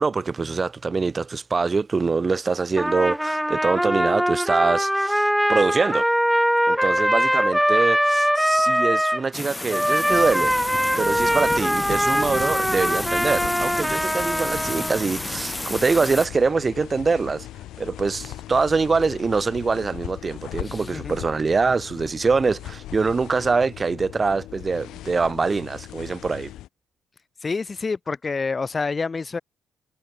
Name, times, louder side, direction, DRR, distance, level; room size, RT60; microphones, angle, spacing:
voice 1, 0.0-6.1 6.7-10.5 11.0-17.5 17.8-26.5, right 4 dB, 30° right, 0.3 m, -24 dB
Trumpet, 2.8-9.2 9.7-15.0, equal, ahead, 0.9 m, -22 dB
sound 1, 9.3-16.3, left 2 dB, 15° left, 4.2 m, -31 dB
sound 2, 10.1-26.7, left 14 dB, 85° left, 0.9 m, -39 dB
voice 2, 20.6-21.2 27.4-29.4, left 4 dB, 30° left, 1.5 m, -28 dB
cardioid pair, 90°, 0 cm